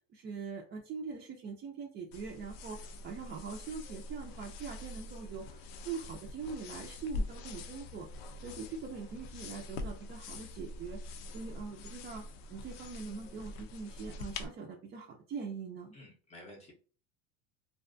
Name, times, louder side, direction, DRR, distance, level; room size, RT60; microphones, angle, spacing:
voice 1, 0.1-2.8 3.0-8.1 8.4-11.0 11.3-12.2 12.5-16.0, right 5 dB, 30° right, 0 dB, 0.5 m, -42 dB
sound 1, 2.1-14.5, left 2 dB, 80° left, 0.5 m, -44 dB
voice 2, 15.9-16.7, left 1 dB, 20° left, 0 dB, 0.7 m, -52 dB
2.6 x 2.2 x 2.5 m, 0.38 s
supercardioid pair, 125°, 30 cm